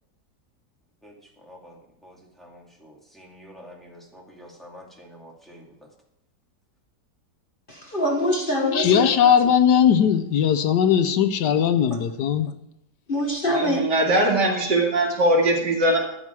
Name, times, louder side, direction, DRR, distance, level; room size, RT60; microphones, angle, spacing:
voice 1, 1.0-5.9, equal, ahead, 2.6 m, -48 dB
voice 2, 7.7-9.0 11.9-12.0 13.1-13.8, equal, 35° left, 1.4 m, -24 dB
voice 3, 8.5-12.5, left 8 dB, 75° left, 1.3 m, -19 dB
voice 4, 13.4-16.0, right 1 dB, 75° right, 3.0 m, -21 dB
13.0 x 9.7 x 4.7 m
omnidirectional pair, 1.9 m